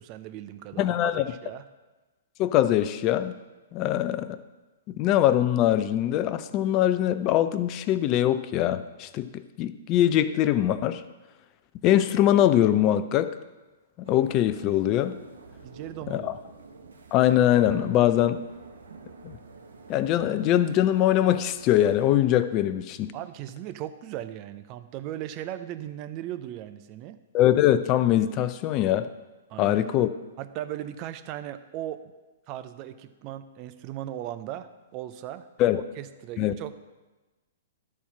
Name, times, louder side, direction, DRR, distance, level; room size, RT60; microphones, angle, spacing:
voice 1, 0.0-1.6 15.6-16.3 23.1-27.2 29.5-29.8 30.4-32.0 32.5-35.4 35.7-36.7, right 12 dB, 40° right, 10 dB, 0.6 m, -37 dB
voice 2, 0.8-1.2 2.4-3.4 3.7-4.4 4.9-11.0 11.8-13.3 14.1-15.2 16.1-16.3 17.1-18.4 19.2-19.3 19.9-23.1 27.3-29.1 29.6-30.1 35.6-35.8 36.4-36.5, left 12 dB, 35° left, 12 dB, 0.5 m, -22 dB
sound 1, 14.0-22.2, right 4 dB, 80° right, 1.0 m, -46 dB
12.0 x 4.3 x 5.9 m, 1.2 s
hypercardioid pair, 120°, 0 cm